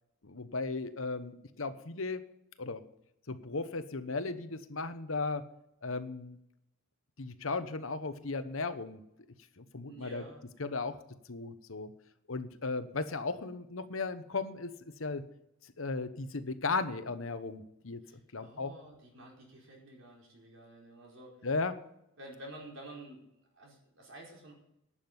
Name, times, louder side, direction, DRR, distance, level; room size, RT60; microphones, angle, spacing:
voice 1, 0.2-2.2 2.6-2.8 3.3-5.5 5.8-6.4 7.2-9.0 9.6-10.2 10.6-11.0 11.3-11.9 12.3-14.7 15.0-15.2 15.8-18.0 18.3-18.7 21.4-21.8, left 3 dB, 85° left, 11 dB, 1.1 m, -36 dB
voice 2, 9.9-10.4 18.0-21.5 22.2-23.3 23.5-24.5, right 1 dB, 75° right, -1 dB, 4.6 m, -50 dB
11.5 x 7.4 x 8.0 m, 0.82 s
head